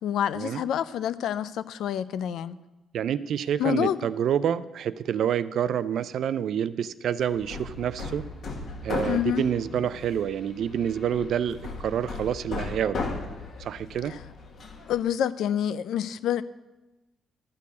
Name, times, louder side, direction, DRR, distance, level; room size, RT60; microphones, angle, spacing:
voice 1, 0.0-2.6 3.6-4.1 9.1-9.4 14.9-16.4, left 10 dB, 80° left, 15 dB, 0.4 m, -27 dB
voice 2, 2.9-8.2 8.8-13.1 13.6-14.1, right 9 dB, 70° right, 15 dB, 0.4 m, -28 dB
Hammer, 7.2-15.0, left 3 dB, 60° left, 1.6 m, -37 dB
13.0 x 4.6 x 8.3 m, 1.1 s
cardioid pair, 90°, 0 cm